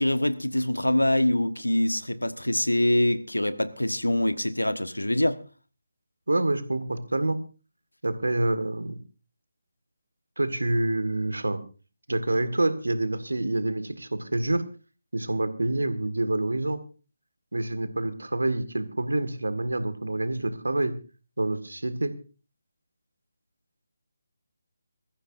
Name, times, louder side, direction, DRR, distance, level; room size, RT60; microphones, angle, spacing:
voice 1, 0.0-5.4, left 1 dB, 80° left, 1.3 m, -24 dB
voice 2, 6.3-7.4 8.0-9.0 10.4-11.6 12.1-14.6 15.1-16.8 17.5-20.9 21.4-22.1, right 2 dB, 70° right, 1.8 m, -27 dB
23.0 x 14.5 x 2.6 m
figure-of-eight pair, 150°, 0 cm